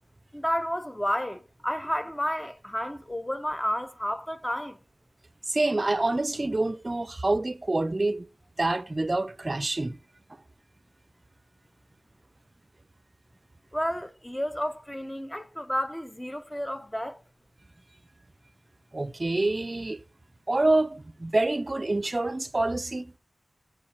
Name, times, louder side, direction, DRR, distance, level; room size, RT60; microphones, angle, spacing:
voice 1, 0.3-4.8 13.7-17.2, equal, 15° left, 0.7 m, -31 dB
voice 2, 5.5-8.3 8.6-10.0 18.9-20.0 20.5-23.1, right 2 dB, 35° right, 0.5 m, -26 dB
7.3 x 5.5 x 6.1 m
cardioid pair, 55°, 0 cm